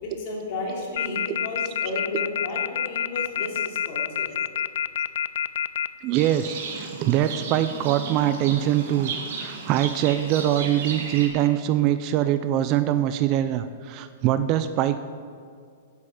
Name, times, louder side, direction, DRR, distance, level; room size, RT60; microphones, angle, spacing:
voice 1, 0.0-4.3, left 2 dB, 45° left, -2 dB, 3.2 m, -33 dB
sound 1, 1.0-5.9, left 9 dB, 70° left, 0.4 m, -26 dB
voice 2, 6.0-9.1 9.4-15.0, right 12 dB, 30° right, 11 dB, 0.4 m, -23 dB
Livestock farm animals working animals, 6.1-11.3, right 5 dB, 60° right, 2.0 m, -35 dB
9.8 x 8.3 x 7.2 m, 2.1 s
hypercardioid pair, 155°, 0 cm